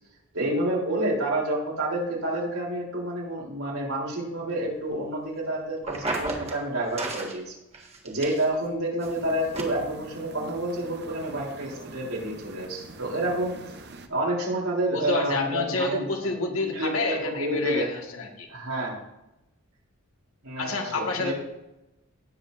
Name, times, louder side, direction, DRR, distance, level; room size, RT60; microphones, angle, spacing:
voice 1, 0.3-7.6 8.0-13.5 14.1-16.3 16.6-17.9 18.5-19.0 20.4-21.3, right 1 dB, 80° right, -2 dB, 3.5 m, -29 dB
sound 1, 5.8-6.6 7.0-7.4 7.7-8.6 9.0-9.1 9.5-9.6, right 2 dB, 30° right, 1.6 m, -32 dB
sound 2, 9.0-14.1, right 2 dB, 50° right, 0.9 m, -45 dB
voice 2, 14.9-18.5 20.6-21.3, left 3 dB, 70° left, 1 dB, 1.8 m, -29 dB
18.5 x 7.6 x 2.6 m, 0.93 s
head